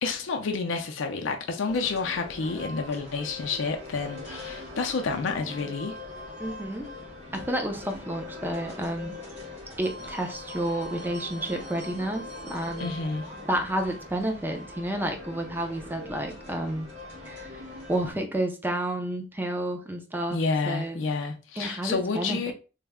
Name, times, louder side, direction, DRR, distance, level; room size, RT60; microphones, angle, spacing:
voice 1, 0.0-6.0 12.8-13.3 20.3-22.5, left 4 dB, 85° left, 0.4 m, -29 dB
sound 1, 1.7-18.1, left 2 dB, 35° right, 1.5 m, -41 dB
voice 2, 6.4-6.9 7.3-9.1 9.8-12.9 13.5-16.9 17.3-17.6 17.9-20.4 20.7-21.0 21.6-22.5, right 1 dB, 10° right, 0.5 m, -30 dB
3.2 x 2.0 x 3.5 m
head